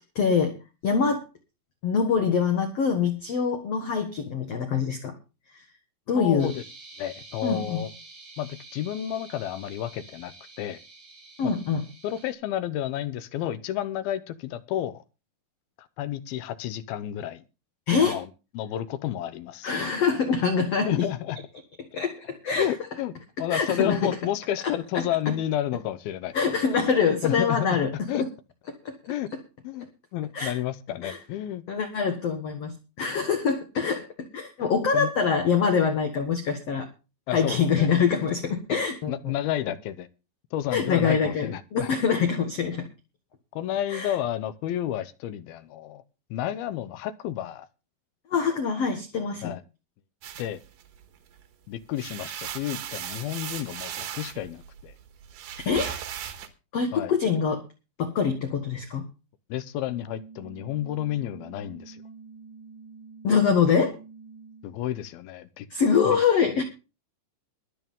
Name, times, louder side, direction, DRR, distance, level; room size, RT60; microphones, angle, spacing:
voice 1, 0.2-0.6 0.8-1.2 1.8-5.1 5.5-5.6 6.1-6.5 7.4-7.8 11.4-11.8 17.9-18.2 19.6-21.1 21.9-22.7 23.5-24.2 24.6-24.7 26.3-28.3 28.7-29.0 30.3-30.5 31.0-31.2 31.7-36.9 37.3-39.3 40.7-42.9 43.9-44.2 48.3-49.5 55.7-55.9 56.7-57.6 58.0-59.0 63.2-64.0 65.7-66.6, left 6 dB, 55° left, 6 dB, 2.0 m, -24 dB
voice 2, 6.2-6.6 7.0-7.9 8.4-10.8 11.4-11.5 12.0-15.0 15.8-17.4 17.9-18.3 18.6-19.7 20.8-21.4 22.6-26.4 27.2-27.7 28.1-28.2 29.1-29.3 29.6-29.9 30.1-31.6 34.9-35.1 37.3-37.9 38.7-38.8 39.1-40.1 40.5-41.9 43.5-46.0 46.3-47.7 49.4-49.6 50.4-50.6 51.7-54.9 56.9-57.1 59.5-62.0 64.6-65.7 66.1-66.2, left 12 dB, 80° left, 14 dB, 2.7 m, -31 dB
sound 1, 6.4-12.3, right 3 dB, 70° right, 8.3 m, -48 dB
sound 2, 50.2-51.4 51.8-56.5, right 9 dB, 90° right, 3.3 m, -37 dB
sound 3, 59.9-64.8, right 5 dB, 40° left, 5.8 m, -47 dB
21.5 x 8.2 x 3.7 m, 0.31 s
omnidirectional pair, 4.3 m